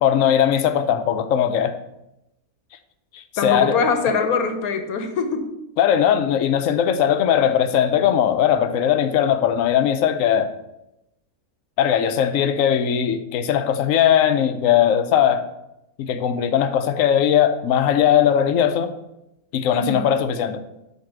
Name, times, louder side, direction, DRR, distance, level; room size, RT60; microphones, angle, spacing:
voice 1, 0.0-1.7 3.1-3.8 5.8-10.5 11.8-15.5 16.0-18.9 19.5-20.6, left 9 dB, 70° left, 9 dB, 1.0 m, -19 dB
voice 2, 3.4-5.5 19.7-20.1, left 5 dB, 90° left, 6 dB, 1.4 m, -23 dB
7.6 x 3.2 x 6.1 m, 0.86 s
omnidirectional pair, 1.5 m